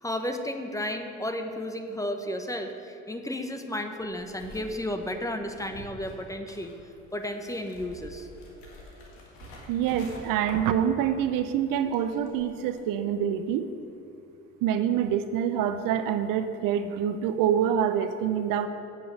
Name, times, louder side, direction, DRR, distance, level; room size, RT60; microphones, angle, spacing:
voice 1, 0.0-6.7 7.1-8.3, left 1 dB, 10° left, 6 dB, 0.9 m, -33 dB
sound 1, 4.0-11.3 11.5-12.8, left 1 dB, 80° left, 1.8 m, -47 dB
voice 2, 9.7-13.7 14.6-18.7, right 9 dB, 60° right, 10 dB, 0.6 m, -26 dB
7.5 x 6.1 x 7.9 m, 2.7 s
hypercardioid pair, 65°, 37 cm